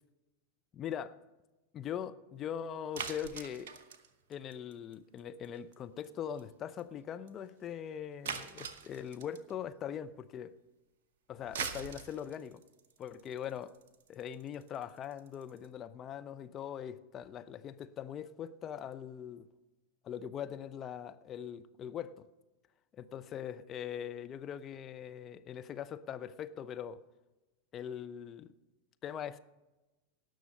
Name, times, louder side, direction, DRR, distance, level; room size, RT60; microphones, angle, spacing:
voice 1, 0.7-1.2 1.7-3.7 4.3-10.5 11.3-12.6 13.0-13.7 14.1-19.5 20.0-22.2 22.9-27.0 27.7-28.5 29.0-29.4, left 9 dB, 30° left, 0.6 m, -41 dB
sound 1, 2.9-5.2 5.4-5.7 6.0-6.1 6.4-6.5 6.8-6.9 7.3-7.4 8.3-9.5 11.3-15.7, right 6 dB, 55° right, 1.0 m, -42 dB
18.0 x 6.4 x 5.3 m
figure-of-eight pair, 90°, 0 cm